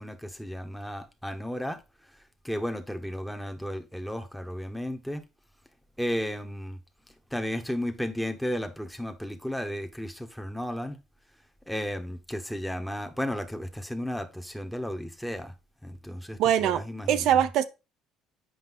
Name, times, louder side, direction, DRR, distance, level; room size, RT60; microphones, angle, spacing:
voice 1, 0.0-1.8 2.4-5.2 6.0-6.8 7.3-11.0 11.7-15.5 15.8-17.4, equal, ahead, 1.2 m, -34 dB
voice 2, 16.4-17.6, right 10 dB, 70° right, 0.7 m, -23 dB
7.9 x 5.2 x 3.6 m
supercardioid pair, 85°, 0 cm